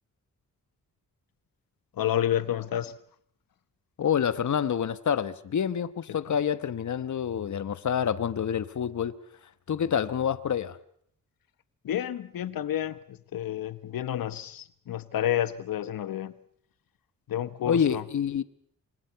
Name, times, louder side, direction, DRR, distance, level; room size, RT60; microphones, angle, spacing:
voice 1, 2.0-3.0 11.8-16.3 17.3-18.0, left 11 dB, 90° left, 1.1 m, -30 dB
voice 2, 4.0-9.1 9.7-10.8 17.7-18.4, left 8 dB, 60° left, 1.2 m, -27 dB
29.0 x 25.5 x 5.8 m
wide cardioid pair, 120°, 33 cm